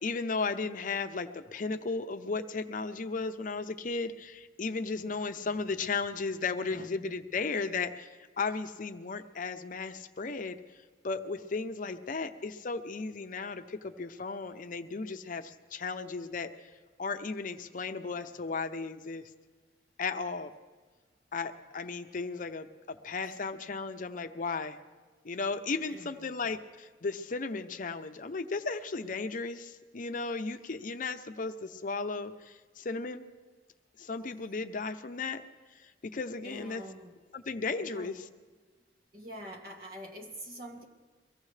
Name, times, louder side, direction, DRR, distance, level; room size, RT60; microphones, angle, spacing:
voice 1, 0.0-10.6 11.0-16.5 17.0-19.2 20.0-20.5 21.3-24.8 25.2-33.3 34.0-35.4 35.7-36.8 37.3-38.2, left 4 dB, 50° left, 8 dB, 0.6 m, -35 dB
voice 2, 5.4-5.9 6.6-7.1 12.2-12.3 13.4-13.5 14.9-15.0 23.2-23.8 25.9-26.3 36.4-37.2 37.8-38.2 39.1-40.8, equal, 60° right, 0 dB, 1.9 m, -47 dB
23.0 x 16.0 x 3.3 m, 1.4 s
head